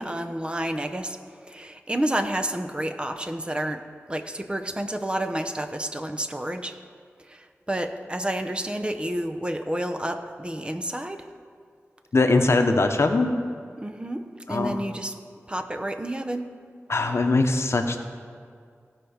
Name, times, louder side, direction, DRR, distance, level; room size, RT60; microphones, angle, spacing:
voice 1, 0.0-6.8 7.2-11.3 13.8-15.1 15.5-16.5, right 1 dB, 20° right, 6 dB, 0.7 m, -30 dB
voice 2, 12.1-13.4 14.5-14.8 16.9-18.0, left 3 dB, 60° left, 6 dB, 0.9 m, -21 dB
17.5 x 5.8 x 5.1 m, 2.1 s
wide cardioid pair, 60°, 5 cm